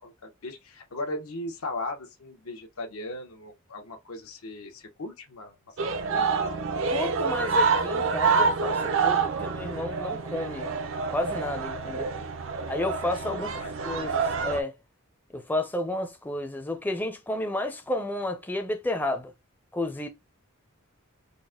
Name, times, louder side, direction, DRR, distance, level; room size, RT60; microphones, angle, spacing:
voice 1, 0.0-5.5 5.8-6.3 11.8-12.4 13.0-13.7, left 2 dB, 80° left, 0.9 m, -38 dB
sound 1, 5.8-14.6, right 4 dB, 65° right, 0.5 m, -27 dB
voice 2, 6.9-10.7 11.1-12.1 12.7-13.5 13.8-14.7 15.3-19.3 19.7-20.1, left 1 dB, 10° left, 0.5 m, -31 dB
4.0 x 2.1 x 3.6 m
head